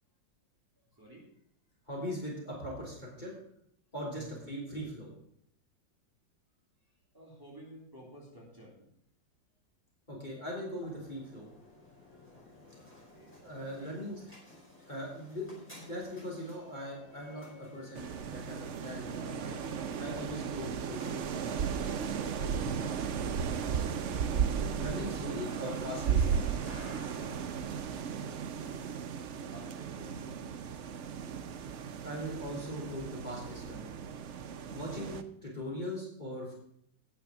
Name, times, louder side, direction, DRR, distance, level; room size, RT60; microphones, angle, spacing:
voice 1, 0.8-1.3 4.1-4.4 7.1-9.0 12.9-14.1 29.5-30.4, right 1 dB, 10° right, -5 dB, 3.2 m, -53 dB
voice 2, 1.9-3.3 3.9-5.1 10.1-11.5 13.4-14.2 14.9-19.6 20.0-21.2 24.7-26.6 32.0-33.9 34.7-36.5, equal, 25° left, -4 dB, 3.3 m, -40 dB
sound 1, 10.7-29.7, left 1 dB, 5° left, 4.9 m, -53 dB
sound 2, 18.0-35.2, right 7 dB, 60° right, 0.7 m, -35 dB
9.5 x 7.0 x 7.2 m, 0.71 s
omnidirectional pair, 2.0 m